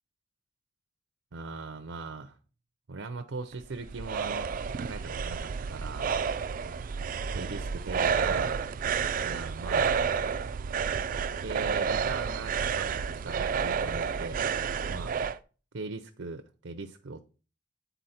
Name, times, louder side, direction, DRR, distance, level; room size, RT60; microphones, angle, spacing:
voice 1, 1.3-2.4 2.9-4.5 4.8-6.1 7.3-8.6 9.2-10.0 11.4-14.5 14.9-15.1 15.7-17.2, right 3 dB, 90° right, 7 dB, 0.7 m, -40 dB
sound 1, 3.5-15.4, right 6 dB, 45° right, 0.4 m, -30 dB
9.1 x 4.1 x 4.3 m, 0.36 s
head